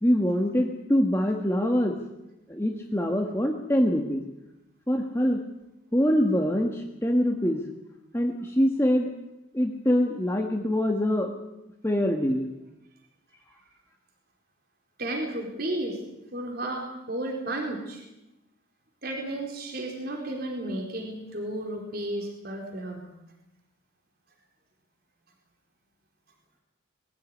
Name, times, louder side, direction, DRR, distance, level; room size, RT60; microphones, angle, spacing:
voice 1, 0.0-2.0 2.5-4.2 4.9-5.4 5.9-7.6 8.1-9.1 9.5-11.3 11.8-12.5, equal, 10° left, 1 dB, 1.6 m, -24 dB
voice 2, 15.0-16.0 16.3-18.0 19.0-23.1, right 1 dB, 50° right, 1 dB, 4.1 m, -33 dB
21.5 x 15.0 x 9.7 m, 0.93 s
head